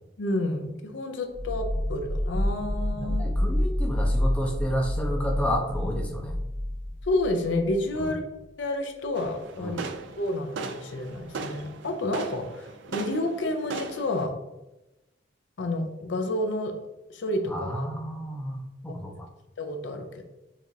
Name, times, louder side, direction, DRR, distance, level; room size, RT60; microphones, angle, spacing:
voice 1, 0.2-3.2 7.1-8.2 8.6-9.8 10.2-14.3 15.6-16.7 17.1-17.9 19.6-20.1, left 1 dB, 75° left, 5 dB, 0.5 m, -29 dB
sound 1, 1.3-8.0, left 1 dB, 40° right, 1.0 m, -28 dB
voice 2, 3.0-6.3 8.0-8.1 9.6-9.9 17.5-19.3, equal, 5° left, -1 dB, 0.5 m, -31 dB
sound 2, 9.1-14.3, right 4 dB, 70° right, 0.4 m, -38 dB
4.7 x 2.4 x 2.7 m, 0.96 s
head